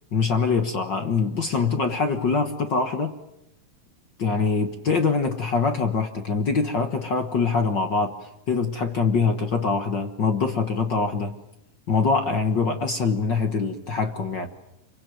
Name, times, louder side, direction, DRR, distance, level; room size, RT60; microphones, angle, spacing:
voice 1, 0.1-3.1 4.2-8.1 8.5-11.3 11.9-14.5, left 4 dB, 50° left, 7 dB, 1.3 m, -24 dB
26.0 x 23.5 x 9.3 m, 0.87 s
omnidirectional pair, 3.8 m